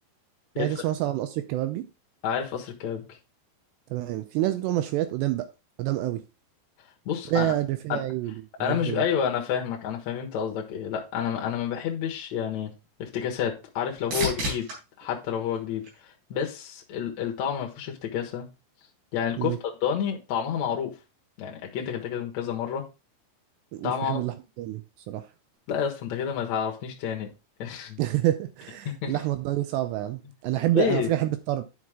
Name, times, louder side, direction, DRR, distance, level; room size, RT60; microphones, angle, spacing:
voice 1, 0.6-1.9 3.9-5.5 5.8-6.2 7.3-9.0 19.4-19.6 23.7-25.3 28.0-31.6, right 14 dB, 85° right, 2.5 m, -28 dB
voice 2, 2.2-3.1 7.0-7.5 7.9-8.0 8.6-12.7 13.0-14.7 15.0-18.5 19.1-19.5 19.8-20.9 21.4-22.8 23.8-24.2 25.7-27.3 27.6-28.0 28.8-29.1 30.7-31.1, left 8 dB, 70° left, 1.7 m, -29 dB
sound 1, 12.5-16.6 17.1-17.7 25.5-25.6, right 1 dB, 55° right, 5.7 m, -36 dB
9.5 x 5.8 x 3.6 m
omnidirectional pair, 5.5 m